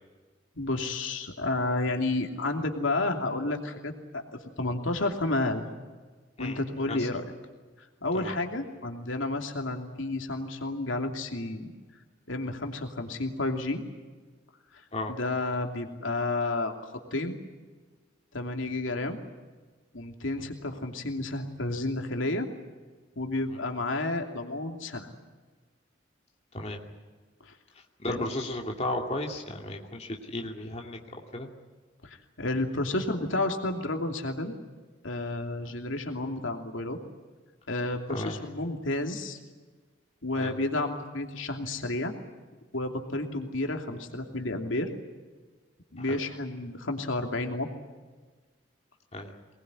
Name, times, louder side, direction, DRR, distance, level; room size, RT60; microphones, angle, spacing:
voice 1, 0.5-5.6 6.4-7.2 8.0-11.7 12.3-13.8 15.1-16.7 17.1-17.4 18.3-19.2 19.9-22.5 23.2-25.1 27.4-27.5 28.1-28.2 32.0-34.6 35.0-37.0 37.7-39.4 40.2-42.1 42.7-44.9 45.9-47.7, left 2 dB, 85° left, 3 dB, 2.8 m, -31 dB
voice 2, 28.0-31.0 31.3-31.5 38.1-38.4 40.4-40.6 46.1-46.2 49.1-49.3, left 1 dB, 35° left, 1 dB, 2.5 m, -34 dB
23.5 x 20.0 x 9.7 m, 1.4 s
head